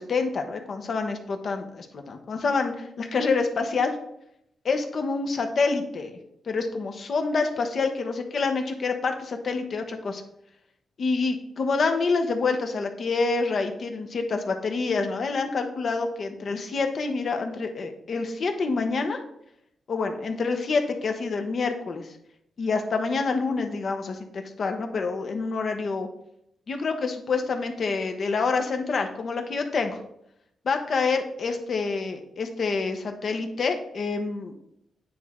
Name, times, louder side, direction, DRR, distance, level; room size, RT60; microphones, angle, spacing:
voice 1, 0.0-4.0 4.6-6.2 6.5-10.2 11.0-19.2 19.9-22.1 22.6-26.1 26.7-30.0 30.6-34.5, left 4 dB, 60° left, 5 dB, 0.9 m, -27 dB
9.2 x 3.1 x 3.6 m, 0.77 s
supercardioid pair, 60°, 0 cm